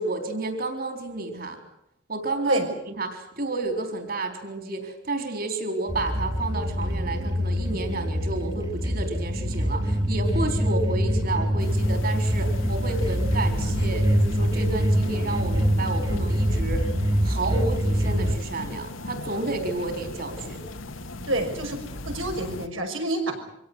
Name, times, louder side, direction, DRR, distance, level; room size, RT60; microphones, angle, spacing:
voice 1, 0.0-1.6 2.1-2.6 3.0-16.9 17.2-20.6, right 2 dB, 50° right, 5 dB, 4.2 m, -31 dB
sound 1, 5.9-18.3, equal, 20° right, 2.0 m, -25 dB
sound 2, 11.6-22.7, left 1 dB, 90° left, 1.8 m, -36 dB
voice 2, 21.3-21.8 22.1-23.4, right 1 dB, 85° right, 3 dB, 5.9 m, -27 dB
25.5 x 17.0 x 9.7 m, 0.79 s
head